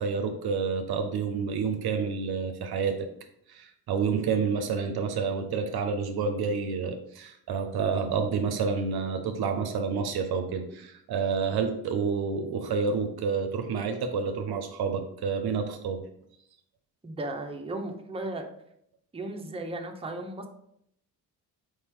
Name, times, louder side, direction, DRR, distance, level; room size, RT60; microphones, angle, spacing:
voice 1, 0.0-2.9 3.5-16.0, right 5 dB, 55° right, 6 dB, 0.7 m, -29 dB
voice 2, 17.0-18.5 19.1-20.5, right 2 dB, 15° right, 3 dB, 0.7 m, -35 dB
4.5 x 2.8 x 3.6 m, 0.72 s
hypercardioid pair, 45°, 45 cm